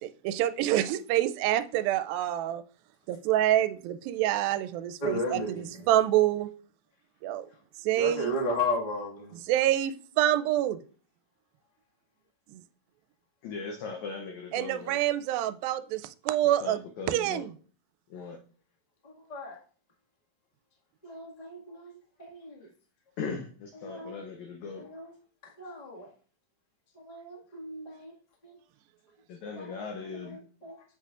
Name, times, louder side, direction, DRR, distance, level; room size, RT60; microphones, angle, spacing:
voice 1, 0.0-2.6 3.1-6.5 7.2-7.5 7.8-8.3 9.5-10.8 12.5-12.6 14.5-16.8 17.1-17.5, right 13 dB, 85° right, 2.3 m, -27 dB
voice 2, 5.0-5.9 8.0-9.4 19.0-19.6 21.0-21.9 22.2-22.7 23.8-24.2 24.8-25.1 25.6-26.1 26.9-28.1 28.4-28.5 29.5-29.8 30.1-30.8, left 1 dB, 25° left, 0.8 m, -35 dB
voice 3, 13.4-15.0 16.6-17.5 18.1-18.4 23.2-24.8 29.3-30.4, left 5 dB, 75° left, 1.8 m, -39 dB
8.2 x 7.8 x 2.4 m
omnidirectional pair, 4.1 m